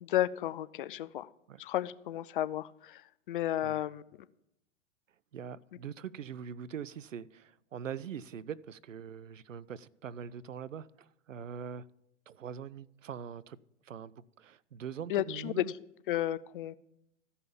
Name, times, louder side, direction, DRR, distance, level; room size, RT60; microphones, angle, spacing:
voice 1, 0.0-1.3 1.6-3.0 3.3-4.0 15.1-15.6 16.1-16.8, left 13 dB, 45° left, 0.5 m, -32 dB
voice 2, 5.3-11.9 12.3-13.6 13.8-15.7, right 8 dB, 85° right, 0.5 m, -43 dB
14.0 x 5.6 x 7.1 m
figure-of-eight pair, 110°, 37 cm